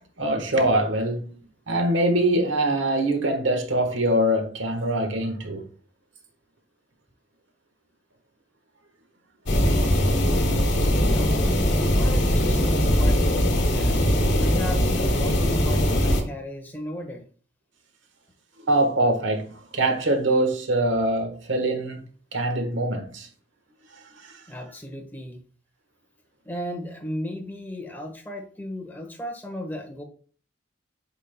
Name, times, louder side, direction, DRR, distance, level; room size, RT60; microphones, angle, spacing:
voice 1, 0.2-1.4 1.7-5.7 18.6-19.5 19.7-22.0 22.3-23.3 24.0-24.4, right 1 dB, 90° right, 1.4 m, -23 dB
sound 1, 9.5-16.2, equal, 65° left, 1.4 m, -21 dB
voice 2, 10.9-14.0 14.4-17.2 24.5-25.4 26.4-30.0, left 1 dB, 10° left, 1.3 m, -35 dB
8.3 x 5.5 x 2.2 m
head